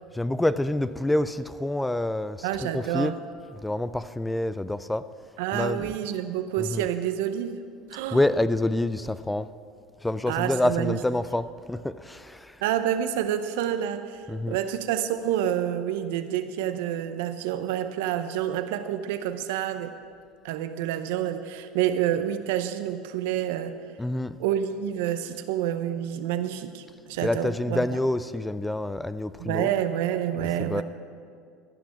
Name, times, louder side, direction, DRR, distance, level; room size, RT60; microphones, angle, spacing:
voice 1, 0.1-3.1 3.6-5.1 5.5-6.0 6.6-6.9 8.1-9.5 10.0-12.5 14.3-14.6 24.0-24.4 27.2-29.7 30.4-30.8, left 1 dB, 10° left, 14 dB, 0.4 m, -27 dB
voice 2, 2.4-3.2 5.4-7.6 7.9-8.2 10.3-11.0 12.6-20.0 20.4-23.8 24.4-28.0 29.4-30.8, right 10 dB, 80° right, 10 dB, 0.7 m, -28 dB
14.0 x 6.1 x 7.7 m, 2.2 s
supercardioid pair, 100°, 0 cm